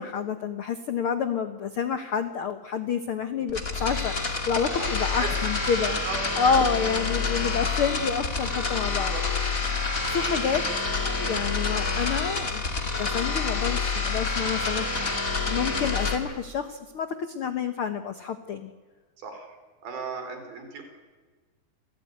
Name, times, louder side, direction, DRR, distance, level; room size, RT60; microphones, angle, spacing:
voice 1, 0.0-6.0 6.4-9.1 9.6-10.6 11.0-15.2 15.4-18.7, left 6 dB, 85° left, 9 dB, 1.2 m, -29 dB
sound 1, 3.5-16.2, left 4 dB, 25° left, 2.4 m, -28 dB
voice 2, 4.7-5.3 5.8-6.9 8.9-9.2 19.2-19.6 19.8-20.8, right 4 dB, 85° right, 4 dB, 5.9 m, -37 dB
27.5 x 16.5 x 9.3 m, 1.4 s
omnidirectional pair, 4.1 m